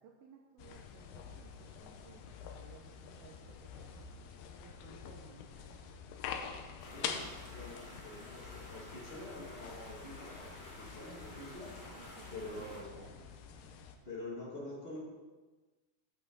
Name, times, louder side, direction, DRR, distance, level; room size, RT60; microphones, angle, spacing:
voice 1, 0.0-4.1 4.6-5.8 11.9-13.7, right 6 dB, 80° right, 1 dB, 2.4 m, -59 dB
sound 1, 0.6-14.0, left 7 dB, 80° left, 2.2 m, -47 dB
sound 2, 6.8-12.8, left 1 dB, 45° left, 1.4 m, -52 dB
voice 2, 6.9-11.7 12.3-13.0 14.0-15.0, left 2 dB, 25° left, -5 dB, 1.5 m, -46 dB
9.9 x 8.6 x 3.9 m, 1.2 s
omnidirectional pair, 4.6 m